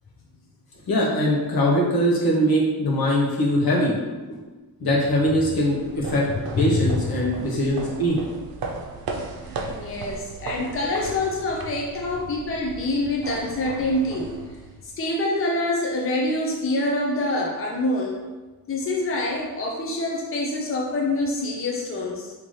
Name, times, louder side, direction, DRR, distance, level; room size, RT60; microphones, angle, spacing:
voice 1, 0.9-3.9 4.3-4.4 4.8-6.2 6.6-8.2, equal, 75° left, -3 dB, 1.1 m, -21 dB
sound 1, 5.4-15.0, right 3 dB, 70° right, 0.6 m, -37 dB
voice 2, 6.3-7.0 9.7-14.3 14.8-18.2 18.7-22.3, left 2 dB, 35° left, -2 dB, 0.6 m, -26 dB
4.0 x 2.9 x 3.2 m, 1.2 s
cardioid pair, 90°, 37 cm